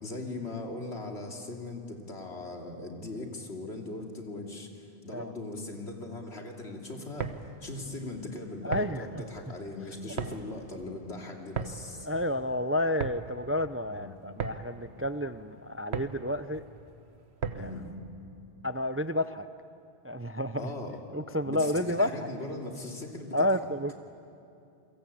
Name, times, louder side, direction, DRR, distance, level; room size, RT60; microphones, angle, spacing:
voice 1, 0.0-7.3 7.6-12.1 13.9-14.1 17.5-17.9 20.6-21.0 21.4-23.5, left 2 dB, 85° left, 1 dB, 3.2 m, -39 dB
sound 1, 7.0-17.9, right 6 dB, 80° right, 1.5 m, -39 dB
voice 2, 8.6-9.2 12.0-16.6 17.5-17.7 18.6-19.5 20.0-20.7 21.1-22.1 23.3-23.9, left 1 dB, 20° right, 12 dB, 0.4 m, -30 dB
29.5 x 22.5 x 8.5 m, 2.6 s
omnidirectional pair, 1.1 m